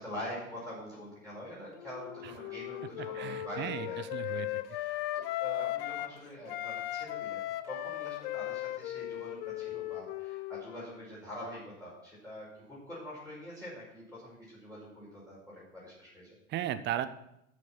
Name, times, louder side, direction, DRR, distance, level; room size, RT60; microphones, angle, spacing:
voice 1, 0.0-7.4 7.7-16.4, equal, 5° left, -9 dB, 5.3 m, -45 dB
Wind instrument woodwind instrument, 1.8-6.2 6.5-11.0, left 15 dB, 45° left, 0.7 m, -37 dB
voice 2, 3.1-4.5 16.5-17.1, right 11 dB, 25° right, 12 dB, 0.8 m, -35 dB
13.0 x 6.3 x 5.9 m, 0.83 s
figure-of-eight pair, 95°, 42 cm